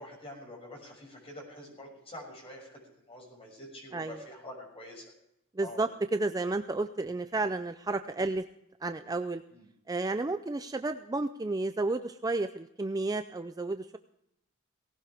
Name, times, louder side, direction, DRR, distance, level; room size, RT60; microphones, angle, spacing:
voice 1, 0.0-2.8 3.1-5.1 5.6-5.8 9.5-9.7, left 1 dB, 25° left, -1 dB, 6.5 m, -46 dB
voice 2, 5.6-8.5 8.8-9.4 9.9-14.0, right 2 dB, 15° right, 9 dB, 0.4 m, -32 dB
18.5 x 17.0 x 3.5 m, 0.80 s
head